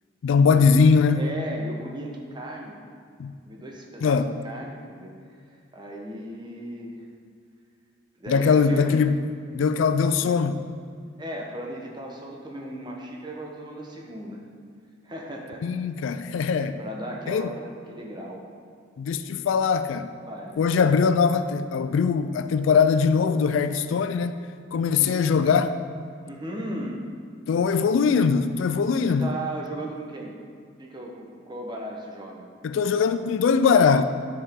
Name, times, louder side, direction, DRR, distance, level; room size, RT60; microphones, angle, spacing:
voice 1, 0.2-1.2 3.2-3.3 4.0-4.3 8.3-9.1 9.5-10.6 15.6-16.8 17.3-17.5 19.0-20.1 20.6-24.3 24.7-25.7 27.5-29.3 32.6-34.0, left 5 dB, 70° left, 11 dB, 0.3 m, -21 dB
voice 2, 1.1-2.8 3.5-5.1 5.7-7.0 8.2-9.0 11.2-14.4 15.0-15.8 16.0-16.2 16.8-18.5 20.3-20.7 25.0-25.5 26.2-27.0 29.0-30.3 30.8-32.5, right 1 dB, 20° right, -1 dB, 0.9 m, -36 dB
9.6 x 4.8 x 3.6 m, 2.2 s
head